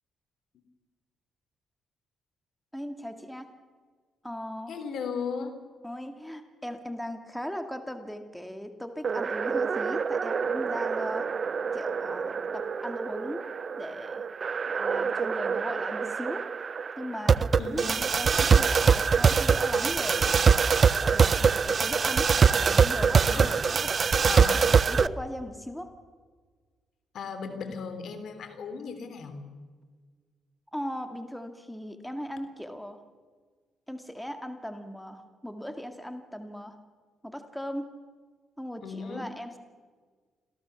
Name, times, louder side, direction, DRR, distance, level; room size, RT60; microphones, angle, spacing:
voice 1, 2.7-3.5 4.2-4.8 5.8-11.3 11.7-14.3 14.7-16.5 17.0-17.9 18.2-20.4 21.0-24.2 24.9-25.9 30.7-33.0 33.9-36.8 37.2-37.8 38.6-39.6, equal, 5° left, 7 dB, 2.0 m, -38 dB
voice 2, 4.7-5.6 17.6-18.0 18.8-18.9 23.3-23.6 24.3-24.7 27.1-29.4 38.8-39.3, left 5 dB, 65° left, 9 dB, 3.4 m, -36 dB
sound 1, 9.0-25.1, right 6 dB, 40° right, 0.6 m, -24 dB
27.0 x 16.5 x 7.1 m, 1.5 s
cardioid pair, 90°, 0 cm